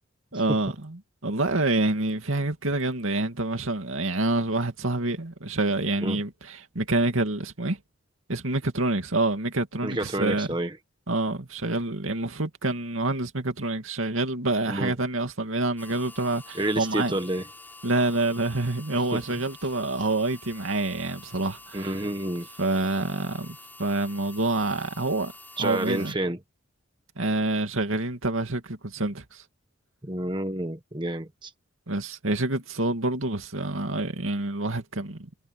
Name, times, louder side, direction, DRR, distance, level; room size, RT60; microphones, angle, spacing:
voice 1, 0.3-7.8 8.3-10.5 11.1-17.1 17.8-21.9 22.6-25.3 25.6-26.1 27.2-29.4 31.9-35.3, right 2 dB, 75° right, 2.5 m, -27 dB
voice 2, 9.8-10.7 14.7-14.9 16.5-17.5 18.9-19.2 21.7-22.5 25.6-26.4 30.0-31.5, right 1 dB, 20° right, 1.3 m, -29 dB
sound 1, 15.8-26.1, left 2 dB, 10° left, 5.2 m, -47 dB
head